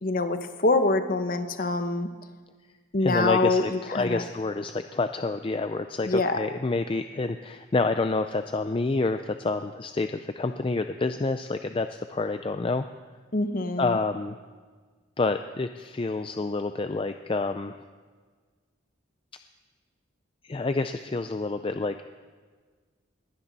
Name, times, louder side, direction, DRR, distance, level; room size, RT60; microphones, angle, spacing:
voice 1, 0.0-2.1 2.9-4.2 6.0-6.4 13.3-14.0, left 2 dB, 45° left, 8 dB, 1.0 m, -25 dB
voice 2, 3.0-12.9 13.8-14.4 15.2-17.8 20.4-22.0, left 3 dB, 25° left, 9 dB, 0.4 m, -28 dB
20.5 x 16.0 x 4.1 m, 1.5 s
head